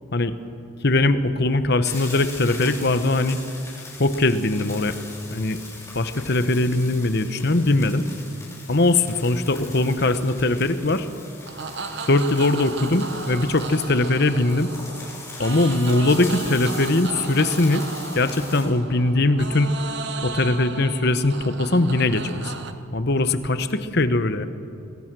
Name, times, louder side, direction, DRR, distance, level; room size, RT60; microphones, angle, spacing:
voice 1, 0.8-3.4 4.0-4.9 5.3-5.6 5.9-8.0 8.7-11.1 12.1-14.7 15.4-17.8 18.1-19.7 20.2-22.5 22.9-24.5, left 2 dB, 50° left, 11 dB, 1.0 m, -21 dB
sound 1, 1.8-18.6, left 3 dB, 15° left, 6.5 m, -40 dB
sound 2, 11.4-22.7, right 4 dB, 55° right, 1.2 m, -35 dB
25.0 x 20.5 x 6.2 m, 2.5 s
head